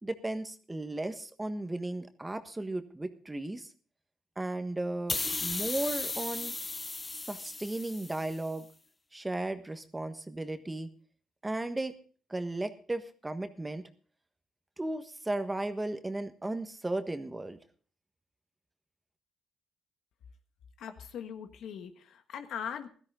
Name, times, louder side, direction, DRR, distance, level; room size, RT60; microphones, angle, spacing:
voice 1, 0.0-3.7 4.4-6.5 7.1-8.7 9.1-10.9 11.4-11.9 12.3-13.8 14.8-17.6, right 2 dB, 15° right, 8 dB, 1.4 m, -35 dB
sound 1, 5.1-8.5, left 3 dB, 25° left, 0.7 m, -36 dB
voice 2, 20.8-22.9, left 8 dB, 75° left, 7 dB, 1.5 m, -40 dB
16.0 x 13.0 x 3.8 m, 0.42 s
cardioid pair, 90°, 0 cm